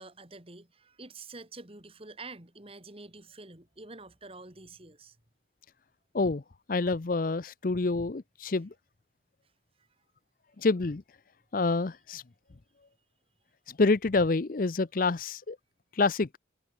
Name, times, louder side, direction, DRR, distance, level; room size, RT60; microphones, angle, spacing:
voice 1, 0.0-5.2 9.8-9.9, right 3 dB, 30° right, 2.5 m, -47 dB
voice 2, 6.7-8.7 10.6-11.0 11.5-12.2 13.7-15.6 15.9-16.3, left 3 dB, 45° left, 0.6 m, -27 dB
head